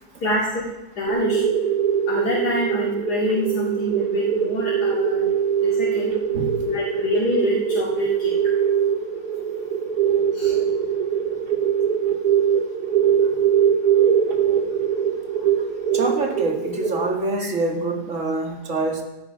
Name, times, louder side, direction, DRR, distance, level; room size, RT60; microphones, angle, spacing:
voice 1, 0.2-0.6 1.0-1.4 2.1-5.2 5.6-6.1 6.7-8.3 10.3-10.5 17.4-17.5, left 2 dB, 70° left, -5 dB, 3.0 m, -26 dB
sound 1, 1.1-17.1, right 8 dB, 70° right, 2.2 m, -22 dB
voice 2, 6.3-6.7 13.0-13.4 15.6-15.7 15.9-19.0, right 2 dB, 50° right, 3 dB, 2.5 m, -26 dB
18.0 x 12.5 x 5.7 m, 0.98 s
omnidirectional pair, 1.8 m